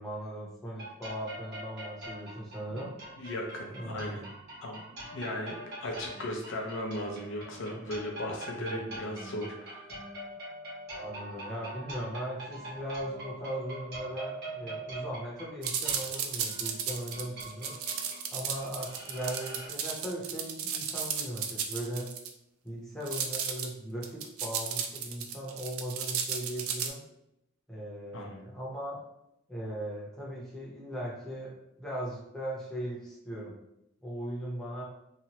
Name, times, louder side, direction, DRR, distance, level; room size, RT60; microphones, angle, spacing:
voice 1, 0.0-3.0 3.7-4.2 8.6-9.5 11.0-17.8 18.3-22.1 22.6-27.0 27.7-29.0 29.5-33.5 34.0-34.8, right 1 dB, 5° left, -6 dB, 0.6 m, -38 dB
sound 1, 0.7-19.7, right 1 dB, 55° right, 1.0 m, -44 dB
voice 2, 3.2-4.2 4.6-4.8 5.1-5.6 5.8-9.9 28.1-28.5, left 1 dB, 65° left, 0 dB, 0.5 m, -37 dB
sound 2, 15.6-22.3 23.1-23.7 24.0-26.9, right 7 dB, 90° right, 0.4 m, -34 dB
2.8 x 2.0 x 2.9 m, 0.80 s
head